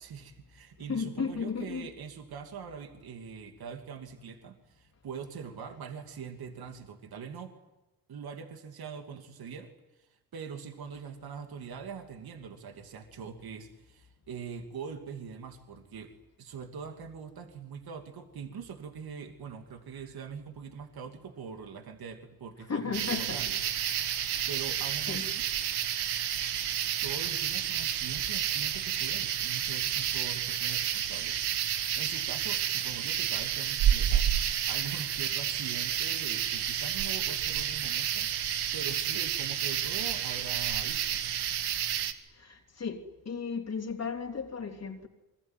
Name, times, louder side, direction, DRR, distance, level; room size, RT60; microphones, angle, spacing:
voice 1, 0.0-7.6 8.1-9.7 10.0-16.1 16.4-23.6 24.2-25.4 27.0-34.2 34.5-41.3, right 6 dB, 70° right, 5 dB, 2.7 m, -43 dB
voice 2, 0.9-1.9 22.7-23.4 25.1-25.3 42.4-45.1, left 5 dB, 40° left, 1 dB, 3.6 m, -34 dB
sound 1, 22.9-42.1, right 10 dB, 90° right, 1.7 m, -30 dB
27.5 x 22.0 x 9.4 m, 1.0 s
cardioid pair, 70°, 39 cm